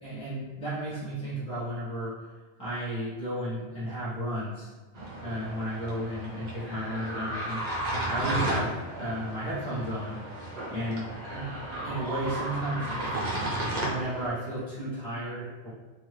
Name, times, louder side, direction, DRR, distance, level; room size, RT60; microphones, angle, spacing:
voice 1, 0.0-2.1 2.6-4.7 5.2-10.2 10.7-11.1 11.3-11.5 11.8-13.2 13.8-15.7, right 1 dB, 5° left, -12 dB, 1.0 m, -33 dB
sound 1, 4.9-14.3, right 1 dB, 45° right, 0.7 m, -34 dB
2.6 x 2.6 x 3.2 m, 1.3 s
omnidirectional pair, 1.2 m